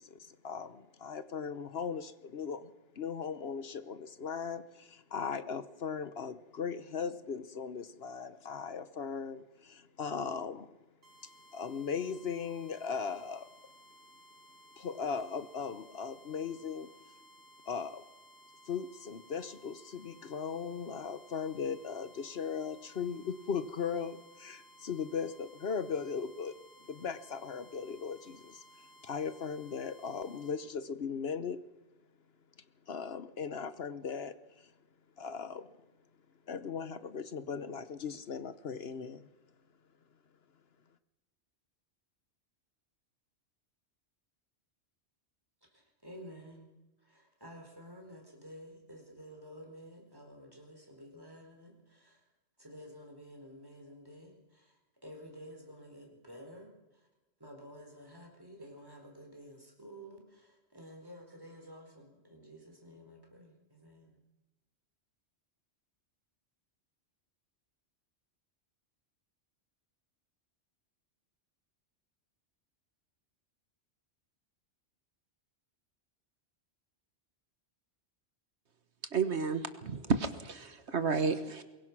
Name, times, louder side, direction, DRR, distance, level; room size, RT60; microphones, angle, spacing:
voice 1, 0.0-10.7 11.5-13.5 14.8-16.9 17.7-18.0 18.7-28.6 29.0-31.6 32.9-34.7 35.2-35.7 36.5-39.3, left 6 dB, 65° left, 13 dB, 1.1 m, -38 dB
sound 1, 11.0-30.6, right 1 dB, 60° right, 5.4 m, -59 dB
voice 2, 45.7-46.7 47.0-52.2 52.6-54.7 55.0-56.7 57.4-64.2, equal, 20° right, 2 dB, 4.5 m, -51 dB
voice 3, 79.1-81.6, right 4 dB, 75° right, 10 dB, 1.6 m, -31 dB
23.5 x 22.0 x 6.1 m, 1.1 s
omnidirectional pair, 1.2 m